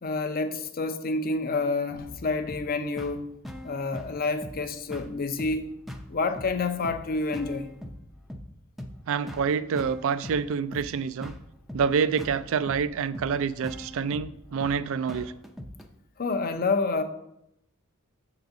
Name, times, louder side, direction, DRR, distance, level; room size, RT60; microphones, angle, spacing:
voice 1, 0.0-3.3 3.6-5.7 6.1-7.7 16.2-17.0, left 3 dB, 45° left, 0.6 m, -28 dB
sound 1, 2.5-15.9, equal, ahead, 0.5 m, -42 dB
voice 2, 9.1-11.3 11.7-15.3, right 6 dB, 65° right, 0.3 m, -27 dB
7.1 x 3.9 x 5.8 m
head